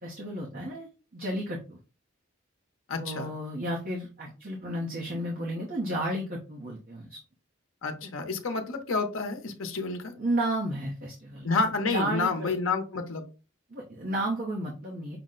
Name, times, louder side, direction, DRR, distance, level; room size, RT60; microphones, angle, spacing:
voice 1, 0.0-1.8 3.0-7.2 8.0-8.1 10.2-11.5 11.9-12.5 13.7-15.2, right 1 dB, 45° right, -2 dB, 0.8 m, -32 dB
voice 2, 2.9-3.3 7.8-10.1 11.4-13.2, left 4 dB, 85° left, 5 dB, 0.8 m, -29 dB
6.0 x 2.1 x 3.7 m, 0.33 s
head